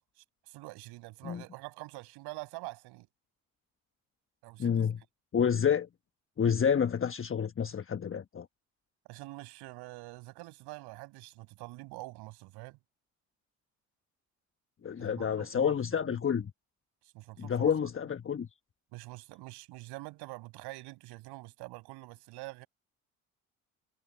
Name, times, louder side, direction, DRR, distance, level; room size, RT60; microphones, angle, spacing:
voice 1, 0.0-3.1 4.4-4.9 9.1-12.8 15.0-16.2 17.1-17.7 18.9-22.7, right 22 dB, 70° right, 7.6 m, -46 dB
voice 2, 4.6-5.0 5.3-5.9 6.4-8.5 14.8-16.5 17.4-18.5, left 7 dB, 30° left, 1.2 m, -29 dB
hypercardioid pair, 55°, 41 cm